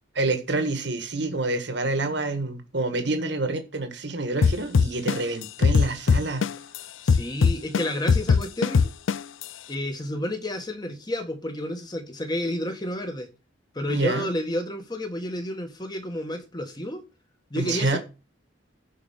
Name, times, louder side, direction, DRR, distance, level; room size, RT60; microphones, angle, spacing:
voice 1, 0.2-6.4 13.9-14.3 17.6-18.0, right 2 dB, 60° right, 1.7 m, -27 dB
sound 1, 4.4-6.8 7.1-9.4, left 5 dB, 80° left, 0.4 m, -19 dB
voice 2, 7.0-8.9 9.7-13.3 13.7-17.0 17.5-18.0, left 1 dB, 20° left, 1.6 m, -30 dB
11.0 x 4.9 x 7.2 m
head